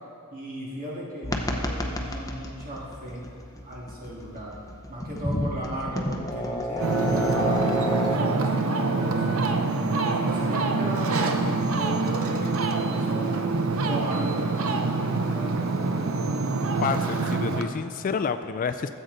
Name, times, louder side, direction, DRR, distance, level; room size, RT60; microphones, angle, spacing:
voice 1, 0.3-3.3 3.6-4.6 4.9-9.2 9.9-13.5 13.8-15.8, right 1 dB, 40° right, -5 dB, 2.3 m, -36 dB
sound 1, 1.2-8.2, left 1 dB, 15° left, 0.7 m, -31 dB
Ocean, 6.8-17.6, right 3 dB, 70° right, 0.7 m, -25 dB
voice 2, 16.8-18.9, left 5 dB, 40° left, 10 dB, 0.3 m, -28 dB
14.0 x 7.9 x 4.0 m, 2.3 s
head